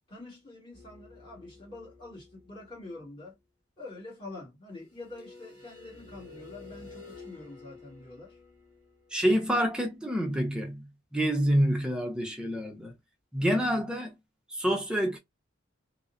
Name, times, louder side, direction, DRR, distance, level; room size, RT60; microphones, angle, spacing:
voice 1, 0.1-3.4 3.8-8.4, left 2 dB, 25° left, 1.7 m, -46 dB
sound 1, 0.7-3.0 4.9-9.7, left 3 dB, 45° left, 1.7 m, -51 dB
voice 2, 9.1-12.9 13.3-14.1 14.5-15.2, equal, 5° right, 0.6 m, -27 dB
2.8 x 2.0 x 2.4 m
head